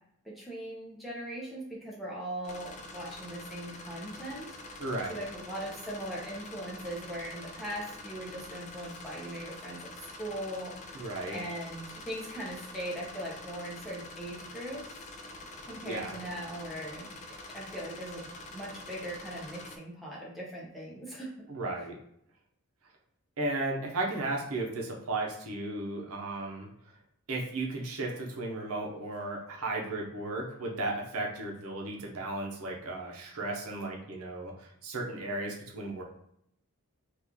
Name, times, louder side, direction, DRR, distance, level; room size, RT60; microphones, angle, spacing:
voice 1, 0.2-4.5 5.1-14.8 15.6-17.1 17.5-21.3, right 1 dB, ahead, -6 dB, 0.7 m, -40 dB
sound 1, 2.4-19.8, left 2 dB, 35° left, 0.3 m, -46 dB
voice 2, 4.8-5.2 10.9-11.4 15.9-16.2 21.5-21.9 23.4-26.7 27.3-36.0, right 2 dB, 85° right, -1 dB, 0.8 m, -35 dB
3.0 x 2.4 x 3.6 m, 0.73 s
head